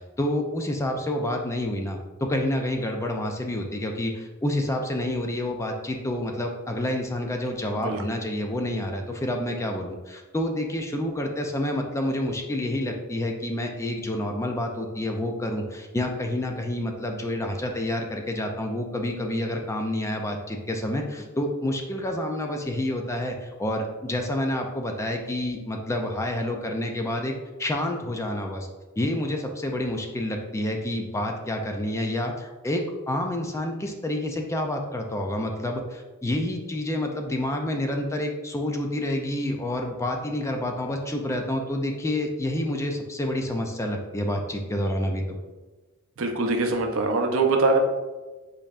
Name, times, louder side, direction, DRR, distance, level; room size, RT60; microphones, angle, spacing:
voice 1, 0.2-27.3 27.6-28.7 29.0-45.4, left 1 dB, 15° left, 3 dB, 0.4 m, -28 dB
voice 2, 46.2-47.8, right 3 dB, 65° right, 3 dB, 0.7 m, -23 dB
5.3 x 4.0 x 2.4 m, 1.2 s
head